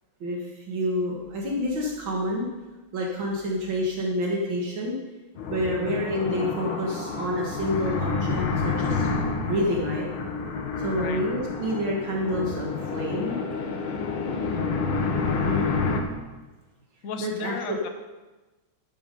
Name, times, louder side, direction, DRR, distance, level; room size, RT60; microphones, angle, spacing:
voice 1, 0.2-2.5 2.9-5.0 5.5-9.1 9.4-10.1 10.8-13.4 15.3-15.7 17.2-17.8, equal, 70° right, -2 dB, 2.3 m, -28 dB
sound 1, 5.4-16.0, left 4 dB, 90° left, 2.0 m, -29 dB
voice 2, 5.7-6.0 11.0-11.2 14.5-14.9 17.0-17.9, left 7 dB, 50° left, 6 dB, 1.2 m, -35 dB
11.5 x 7.7 x 5.3 m, 1.2 s
omnidirectional pair, 2.2 m